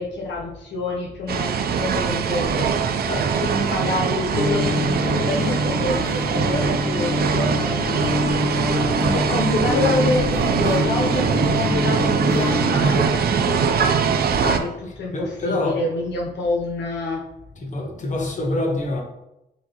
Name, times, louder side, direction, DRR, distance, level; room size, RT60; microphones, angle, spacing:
voice 1, 0.0-1.5 1.8-2.8 3.4-8.2 9.1-17.2, left 2 dB, 80° left, -1 dB, 0.7 m, -27 dB
sound 1, 1.3-14.6, right 6 dB, 60° right, 0.4 m, -22 dB
voice 2, 3.1-3.5 14.3-14.5 15.1-15.8 17.6-19.0, left 1 dB, 45° left, 0 dB, 1.0 m, -26 dB
sound 2, 4.3-13.1, left 2 dB, 15° left, 1.4 m, -26 dB
6.0 x 2.6 x 2.8 m, 0.88 s
cardioid pair, 95°, 18 cm